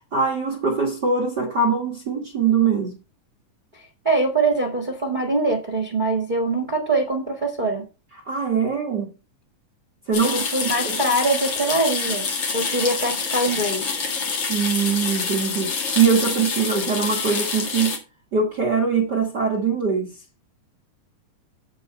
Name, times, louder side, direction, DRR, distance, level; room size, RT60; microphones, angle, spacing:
voice 1, 0.1-3.0 8.2-9.1 10.1-10.4 10.8-11.0 14.5-18.0 18.3-20.1, right 5 dB, 60° right, 1.1 m, -22 dB
voice 2, 3.7-7.9 10.2-12.3 12.5-13.9, right 2 dB, 80° right, 0.4 m, -23 dB
sound 1, 10.1-18.0, left 5 dB, 45° left, 2.5 m, -27 dB
7.7 x 7.6 x 4.4 m
omnidirectional pair, 3.9 m